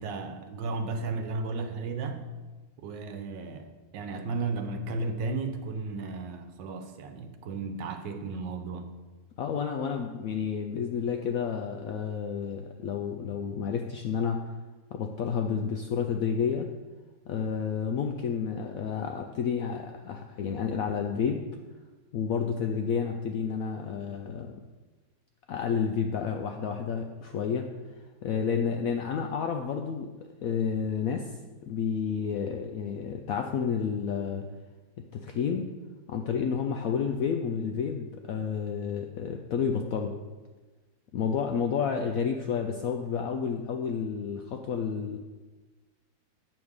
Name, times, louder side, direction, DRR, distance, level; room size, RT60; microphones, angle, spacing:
voice 1, 0.0-2.2 2.8-8.9, right 3 dB, 75° right, 7 dB, 1.4 m, -34 dB
voice 2, 9.4-14.5 14.9-16.7 17.3-21.4 22.1-24.6 25.5-27.7 28.2-30.1 30.4-31.3 31.6-34.5 35.1-35.7 36.1-40.2 41.1-45.2, left 6 dB, 80° left, 4 dB, 0.7 m, -30 dB
8.6 x 3.6 x 6.4 m, 1.2 s
omnidirectional pair, 2.0 m